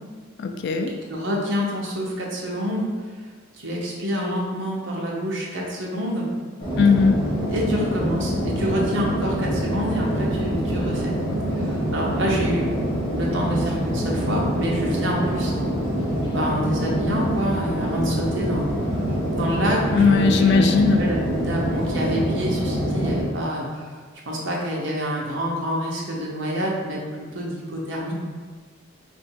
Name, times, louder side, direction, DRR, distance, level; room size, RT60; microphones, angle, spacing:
voice 1, 0.4-0.9 6.8-7.2 19.9-21.0, left 5 dB, 55° left, 6 dB, 0.3 m, -18 dB
voice 2, 1.1-2.9 3.2-3.3 3.6-6.3 7.5-11.1 11.5-15.8 16.3-19.0 19.3-23.9 24.3-27.0 27.3-28.1, equal, 60° right, -3 dB, 0.9 m, -27 dB
sound 1, 6.6-23.2, equal, 25° left, 1.3 m, -25 dB
3.7 x 2.6 x 4.4 m, 1.5 s
head